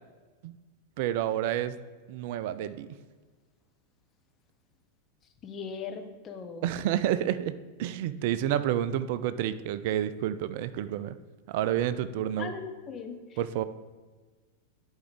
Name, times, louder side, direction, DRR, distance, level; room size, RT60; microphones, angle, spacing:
voice 1, 1.0-1.8 2.1-2.9 6.6-11.2 11.5-12.5 13.4-13.6, right 11 dB, 50° right, 14 dB, 0.3 m, -29 dB
voice 2, 5.4-6.7 12.4-13.2, left 5 dB, 25° left, 4 dB, 0.9 m, -39 dB
11.0 x 4.8 x 3.7 m, 1.4 s
figure-of-eight pair, 90°, 0 cm